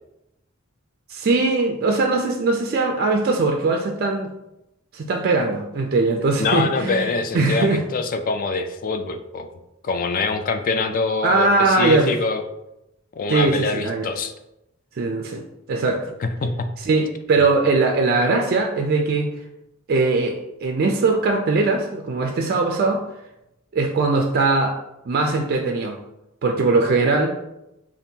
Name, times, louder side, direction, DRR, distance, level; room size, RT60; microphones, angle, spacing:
voice 1, 1.1-4.3 4.9-7.1 7.3-7.8 11.2-12.1 13.3-14.1 15.0-15.4 15.7-16.1 16.8-19.3 19.9-23.0 23.7-24.8 25.1-26.0 26.4-27.3, right 3 dB, 50° right, 3 dB, 0.4 m, -20 dB
voice 2, 6.4-9.5 9.8-12.4 13.2-14.3 16.2-16.7, left 4 dB, 45° left, 8 dB, 0.4 m, -24 dB
5.2 x 2.5 x 2.7 m, 0.89 s
head